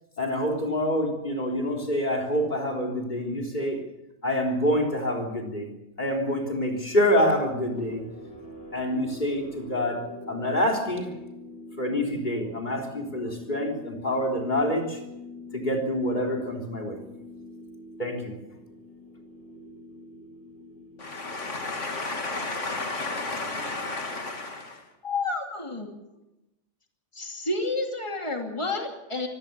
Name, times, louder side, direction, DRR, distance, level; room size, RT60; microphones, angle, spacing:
voice 1, 0.2-3.8 4.2-5.7 6.0-8.0 8.7-11.1 11.8-15.0 15.5-17.0 18.0-18.3, left 1 dB, 40° left, 1 dB, 3.7 m, -26 dB
sound 1, 7.6-23.9, left 1 dB, 65° left, 5.3 m, -45 dB
voice 2, 21.0-24.8, left 3 dB, 85° left, 4 dB, 2.8 m, -32 dB
voice 3, 25.0-25.9 27.1-29.3, left 3 dB, 25° left, 2 dB, 2.7 m, -30 dB
24.5 x 17.0 x 7.0 m, 0.94 s
omnidirectional pair, 1.2 m